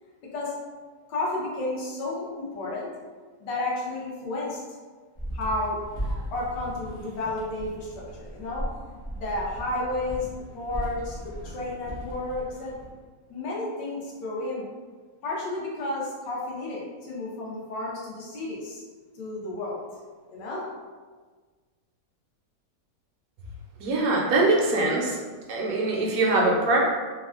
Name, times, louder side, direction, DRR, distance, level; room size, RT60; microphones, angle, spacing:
voice 1, 1.1-2.9 3.4-4.6 5.3-5.8 6.3-12.7 13.3-14.7 15.2-18.8 19.1-19.8 20.3-20.7, left 2 dB, 80° left, -4 dB, 1.4 m, -32 dB
sound 1, 5.2-12.9, equal, 35° left, 0.4 m, -37 dB
voice 2, 23.8-25.2 25.5-26.8, right 2 dB, 70° right, -2 dB, 0.9 m, -22 dB
3.4 x 2.2 x 2.4 m, 1.4 s
omnidirectional pair, 1.9 m